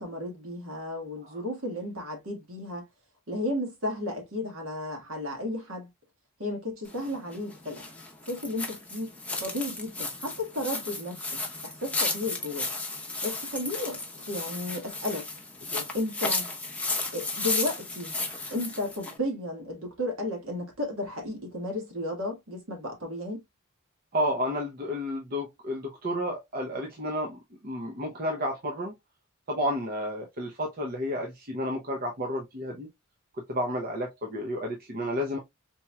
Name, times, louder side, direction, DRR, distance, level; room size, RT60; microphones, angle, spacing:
voice 1, 0.0-2.8 3.3-5.9 6.4-7.9 8.3-9.1 9.4-12.7 13.2-14.0 14.3-15.2 15.9-16.5 17.1-18.2 18.5-23.4, left 1 dB, 65° right, 1.6 m, -33 dB
sound 1, 6.8-19.2, left 2 dB, 5° left, 0.7 m, -34 dB
voice 2, 24.1-27.4 27.6-28.9 29.5-32.9 33.5-35.4, equal, 45° right, 0.7 m, -31 dB
4.5 x 2.9 x 2.2 m
head